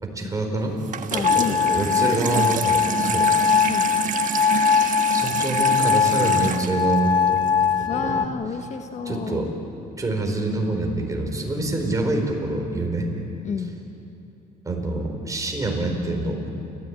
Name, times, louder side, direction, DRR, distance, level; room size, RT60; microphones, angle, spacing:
voice 1, 0.0-0.8 1.1-3.3 4.8-7.4 7.8-8.2 9.1-9.5 10.0-13.1 14.6-16.4, right 2 dB, 20° right, 2 dB, 4.6 m, -26 dB
Water tap faucet / Sink (filling or washing), 0.8-7.8, right 8 dB, 50° right, 1.4 m, -29 dB
voice 2, 1.1-2.3 3.7-4.2 7.9-9.4 13.4-13.8, left 6 dB, 45° left, 6 dB, 1.4 m, -31 dB
sound 1, 1.2-8.3, left 7 dB, 25° left, 0.8 m, -21 dB
29.5 x 14.5 x 9.0 m, 2.8 s
cardioid pair, 110°, 17 cm